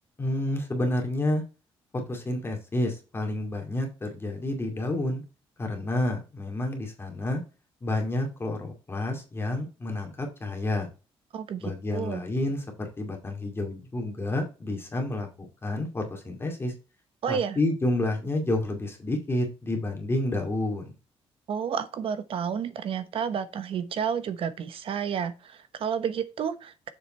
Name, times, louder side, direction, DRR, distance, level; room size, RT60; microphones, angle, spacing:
voice 1, 0.2-1.4 1.9-5.2 5.6-7.4 7.8-10.9 11.6-16.7 17.3-20.9, left 1 dB, 25° left, 2.3 m, -29 dB
voice 2, 11.3-11.6 11.9-12.2 17.2-17.6 21.5-26.9, right 7 dB, 60° right, 1.0 m, -30 dB
7.2 x 5.1 x 4.3 m
cardioid pair, 120°, 10 cm